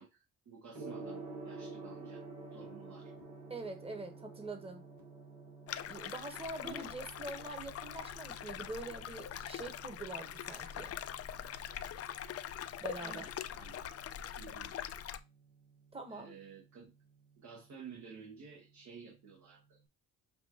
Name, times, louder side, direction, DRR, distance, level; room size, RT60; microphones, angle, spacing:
voice 1, 0.0-2.2 2.5-3.1 6.6-7.0 12.9-13.9 14.4-14.7 16.1-16.9 17.4-19.8, right 5 dB, 65° right, 1.4 m, -52 dB
Gong, 0.7-19.8, right 3 dB, 80° right, 1.7 m, -52 dB
voice 2, 3.5-4.8 5.8-10.9 12.8-13.2 15.9-16.4, right 2 dB, 20° right, 1.2 m, -44 dB
sound 1, 5.7-15.2, left 10 dB, 50° left, 0.4 m, -43 dB
6.9 x 2.6 x 2.9 m
cardioid pair, 100°, 31 cm